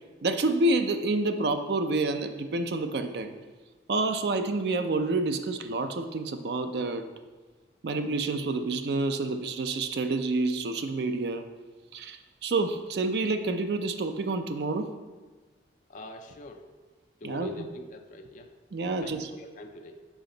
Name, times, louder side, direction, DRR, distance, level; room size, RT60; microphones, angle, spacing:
voice 1, 0.2-3.3 3.9-7.0 7.8-11.5 11.9-14.9 17.2-17.7 18.7-19.3, right 2 dB, 70° right, 8 dB, 0.5 m, -28 dB
voice 2, 15.9-16.7 17.2-18.5 19.0-20.0, left 1 dB, 45° left, 4 dB, 0.5 m, -43 dB
7.1 x 4.9 x 3.8 m, 1.3 s
head